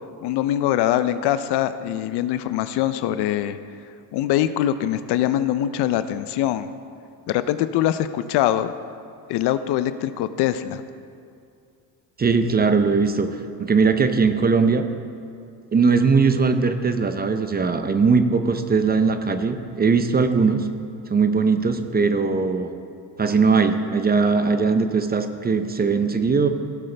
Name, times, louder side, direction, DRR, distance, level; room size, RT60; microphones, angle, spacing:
voice 1, 0.2-3.6 4.1-6.7 7.3-8.7 9.3-10.8, left 12 dB, 65° left, 12 dB, 0.6 m, -23 dB
voice 2, 12.2-14.8 15.7-20.7 21.1-22.7 23.2-26.5, right 4 dB, 20° right, 8 dB, 0.6 m, -20 dB
16.5 x 7.7 x 3.3 m, 2.4 s
cardioid pair, 95°, 43 cm